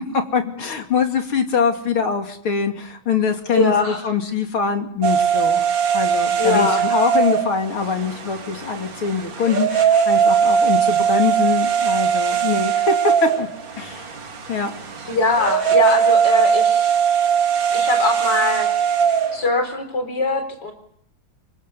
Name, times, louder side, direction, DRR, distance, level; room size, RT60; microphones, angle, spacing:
voice 1, 0.1-5.7 5.9-13.5 13.8-14.1 14.5-14.7, left 6 dB, 85° left, 4 dB, 3.4 m, -23 dB
voice 2, 3.5-4.0 6.4-6.8 15.1-17.0 17.7-18.7 19.3-20.7, left 3 dB, 55° left, 7 dB, 4.9 m, -21 dB
sound 1, 5.0-19.5, right 8 dB, 65° right, 2.7 m, -20 dB
27.5 x 24.5 x 6.9 m, 0.69 s
omnidirectional pair, 2.3 m